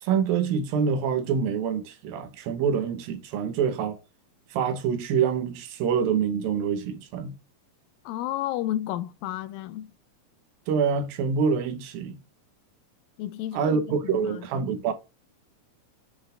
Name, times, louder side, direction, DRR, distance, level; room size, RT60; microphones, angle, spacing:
voice 1, 0.0-4.0 4.5-7.3 10.7-12.2 13.5-14.9, right 6 dB, 85° right, 2.8 m, -26 dB
voice 2, 8.1-9.9 13.2-14.4, left 13 dB, 85° left, 2.3 m, -32 dB
7.8 x 4.2 x 5.0 m
omnidirectional pair, 4.0 m